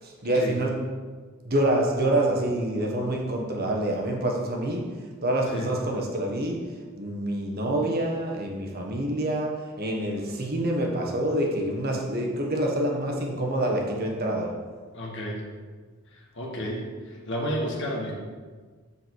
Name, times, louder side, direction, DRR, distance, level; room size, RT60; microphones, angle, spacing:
voice 1, 0.0-0.9 1.4-14.6, right 1 dB, 50° right, 0 dB, 1.4 m, -27 dB
voice 2, 14.9-15.4 16.1-18.1, equal, 60° left, -1 dB, 1.7 m, -31 dB
7.2 x 6.8 x 4.7 m, 1.5 s
head